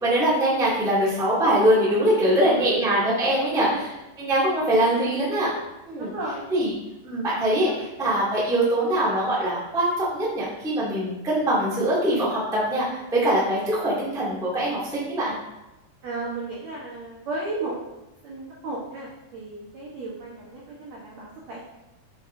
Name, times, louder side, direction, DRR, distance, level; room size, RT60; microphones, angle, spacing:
voice 1, 0.0-3.7 4.2-5.5 5.9-6.1 6.5-6.7 7.0-15.3, right 1 dB, 5° right, -7 dB, 0.5 m, -23 dB
voice 2, 2.3-2.7 3.5-3.8 6.0-6.4 7.6-7.9 16.0-17.8 18.2-21.6, right 2 dB, 85° right, -5 dB, 1.5 m, -34 dB
8.7 x 6.0 x 2.7 m, 1.0 s
omnidirectional pair, 5.0 m